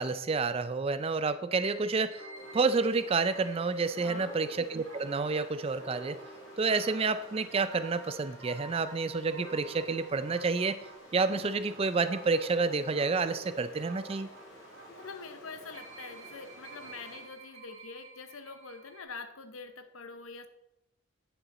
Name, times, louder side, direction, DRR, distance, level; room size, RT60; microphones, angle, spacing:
voice 1, 0.0-2.3 2.5-6.2 6.6-10.8 11.1-14.3, right 4 dB, 25° right, 0.4 m, -29 dB
sound 1, 1.5-19.0, right 2 dB, 70° right, 3.0 m, -49 dB
Stream, 2.4-17.4, left 1 dB, 60° left, 2.7 m, -53 dB
voice 2, 4.0-4.4 14.9-20.5, left 4 dB, 80° left, 0.8 m, -45 dB
9.2 x 7.0 x 4.1 m
head